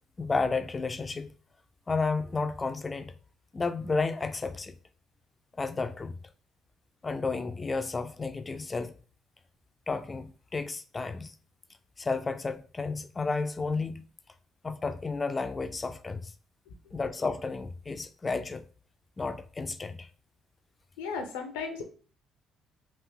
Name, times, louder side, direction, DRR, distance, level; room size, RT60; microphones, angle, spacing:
voice 1, 0.2-1.3 1.9-3.1 3.5-4.8 5.6-6.2 7.0-8.9 9.9-11.3 12.0-14.0 14.6-16.3 16.9-18.6 19.2-20.1, left 4 dB, 30° left, 0.4 m, -32 dB
voice 2, 21.0-21.8, left 5 dB, 85° left, 0.7 m, -35 dB
3.5 x 2.5 x 3.5 m
hypercardioid pair, 55°, 0 cm